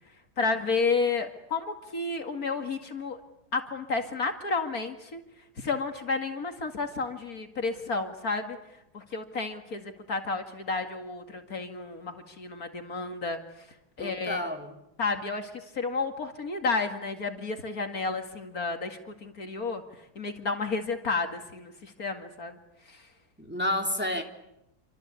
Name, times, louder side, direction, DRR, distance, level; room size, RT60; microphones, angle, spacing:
voice 1, 0.4-3.2 3.5-5.2 5.6-8.6 8.9-13.4 14.0-14.4 15.0-19.8 20.2-22.6 22.9-23.0, left 4 dB, 60° left, 5 dB, 2.5 m, -31 dB
voice 2, 14.0-14.8 23.4-24.2, left 1 dB, 5° right, 2 dB, 3.0 m, -30 dB
28.0 x 25.5 x 8.3 m, 0.87 s
omnidirectional pair, 1.8 m